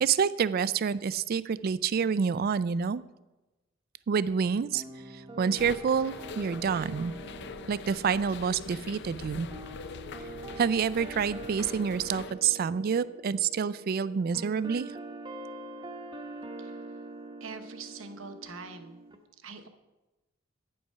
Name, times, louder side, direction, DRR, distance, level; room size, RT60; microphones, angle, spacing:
voice 1, 0.0-3.0 4.1-4.8 5.1-7.1 7.7-9.5 10.6-14.9, right 6 dB, 50° right, 17 dB, 0.3 m, -28 dB
sound 1, 4.7-19.2, right 2 dB, 20° right, 0.9 m, -44 dB
sound 2, 5.6-12.3, left 5 dB, 60° left, 0.5 m, -43 dB
voice 2, 17.4-19.0 19.4-19.7, right 4 dB, 75° right, 8 dB, 1.0 m, -44 dB
9.5 x 7.7 x 5.5 m, 1.1 s
head